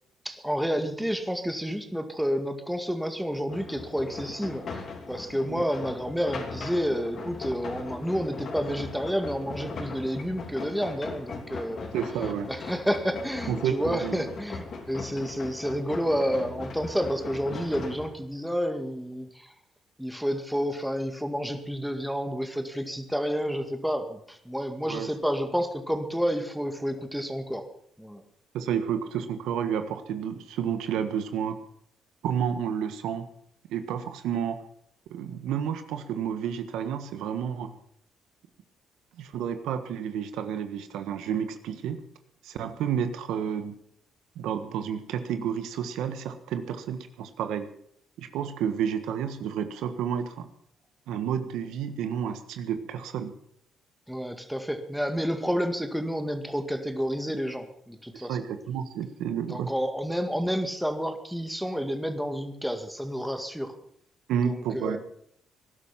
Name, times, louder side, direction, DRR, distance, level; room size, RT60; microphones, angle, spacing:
voice 1, 0.2-12.0 12.5-19.5 20.0-27.7 28.0-28.2 54.1-58.4 59.4-63.7 64.3-65.0, equal, ahead, 6 dB, 2.0 m, -30 dB
sound 1, 3.5-18.1, left 4 dB, 55° left, 3.3 m, -39 dB
voice 2, 11.9-12.5 13.5-14.2 24.9-25.1 28.5-31.5 32.2-33.2 33.7-34.6 35.1-37.7 39.2-42.0 42.4-43.7 44.3-47.7 48.2-50.5 51.1-53.3 58.1-59.7 64.3-65.0, right 8 dB, 85° right, 9 dB, 1.4 m, -30 dB
19.0 x 11.5 x 5.9 m, 0.68 s
cardioid pair, 90°, 0 cm